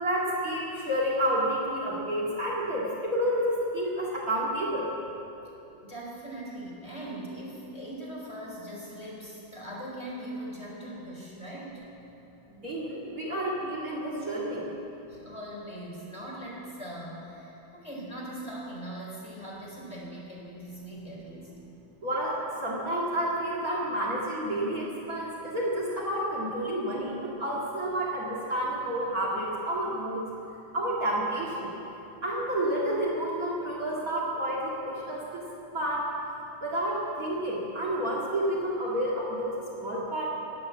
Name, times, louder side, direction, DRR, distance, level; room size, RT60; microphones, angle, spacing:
voice 1, 0.0-4.9 12.6-14.7 22.0-30.2 30.7-31.7 32.2-35.5 35.7-36.1 36.6-40.3, right 1 dB, 45° right, -5 dB, 2.6 m, -30 dB
voice 2, 5.8-11.8 15.1-21.5, right 1 dB, 15° left, -6 dB, 4.4 m, -40 dB
19.5 x 8.5 x 8.4 m, 2.9 s
omnidirectional pair, 2.1 m